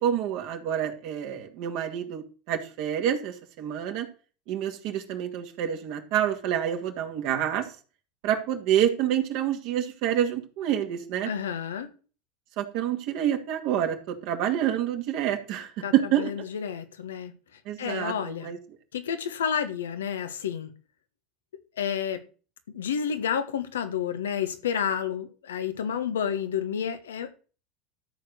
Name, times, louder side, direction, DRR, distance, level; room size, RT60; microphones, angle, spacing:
voice 1, 0.0-4.1 4.5-7.7 8.2-11.3 12.6-16.3 17.7-18.6, right 10 dB, 60° right, 2.3 m, -27 dB
voice 2, 11.2-11.9 15.8-17.3 17.8-18.5 18.9-20.7 21.8-22.2 22.7-27.4, left 8 dB, 85° left, 1.3 m, -30 dB
13.0 x 4.7 x 6.6 m
hypercardioid pair, 85°, 0 cm